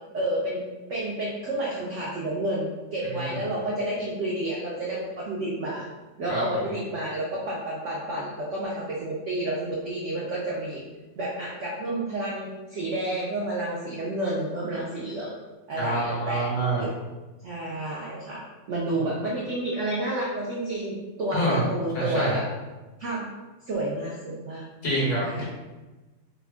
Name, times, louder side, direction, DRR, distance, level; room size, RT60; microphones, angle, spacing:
voice 1, 0.1-0.6 0.9-5.8 6.2-10.8 11.2-15.3 15.7-16.5 16.8-16.9 17.4-18.4 18.7-20.9 21.2-22.4 23.0-23.3 23.7-24.6 25.2-25.4, right 1 dB, 85° right, -5 dB, 0.6 m, -30 dB
voice 2, 6.3-6.6 15.7-16.9 18.9-19.1 21.3-21.6 21.9-22.4 24.8-25.4, right 1 dB, 50° left, -6 dB, 1.4 m, -26 dB
3.5 x 2.1 x 3.4 m, 1.2 s
omnidirectional pair, 2.0 m